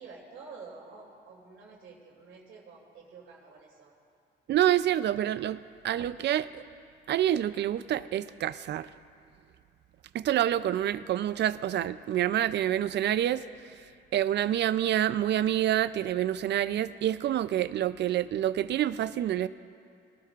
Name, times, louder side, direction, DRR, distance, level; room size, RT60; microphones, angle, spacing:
voice 1, 0.0-3.9, right 4 dB, 80° right, -3 dB, 2.8 m, -49 dB
voice 2, 4.5-5.6 5.8-6.6 7.1-8.9 10.1-13.4 14.1-19.5, right 11 dB, 60° right, 15 dB, 0.5 m, -27 dB
22.5 x 12.5 x 2.5 m, 2.3 s
cardioid pair, 90°, 20 cm